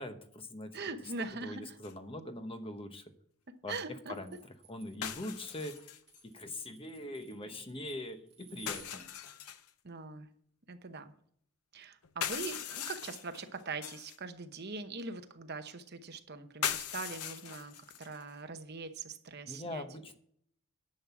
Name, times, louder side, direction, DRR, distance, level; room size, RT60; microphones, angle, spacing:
voice 1, 0.0-0.8 1.3-3.0 3.6-3.8 4.2-4.4 4.7-6.0 6.2-9.1 19.5-20.1, left 1 dB, 25° left, 7 dB, 1.0 m, -42 dB
voice 2, 0.7-1.8 3.7-4.1 9.8-10.3 10.7-11.1 11.7-19.9, right 4 dB, 45° right, 8 dB, 0.9 m, -42 dB
sound 1, 1.8-1.9 5.0-6.2 8.7-9.7 12.0-14.2 16.6-18.2, left 9 dB, 90° left, 0.8 m, -39 dB
sound 2, 4.1-8.9, right 8 dB, 30° right, 2.9 m, -59 dB
10.5 x 6.3 x 7.1 m, 0.64 s
head